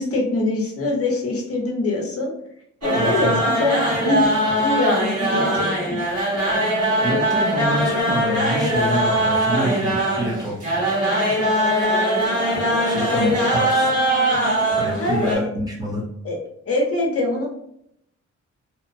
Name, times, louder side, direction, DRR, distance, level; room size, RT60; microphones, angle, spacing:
voice 1, 0.0-2.3 2.8-4.3 4.6-6.0 13.1-13.5 15.0-15.4 16.2-16.4 16.7-17.5, left 2 dB, 50° left, -1 dB, 0.7 m, -23 dB
sound 1, 2.8-15.4, right 1 dB, 55° right, 1.4 m, -21 dB
voice 2, 3.0-3.4 6.1-6.2 7.0-10.6 12.8-14.0 14.7-16.0, right 1 dB, 15° right, -5 dB, 0.6 m, -26 dB
2.8 x 2.0 x 2.5 m, 0.74 s
wide cardioid pair, 165°, 29 cm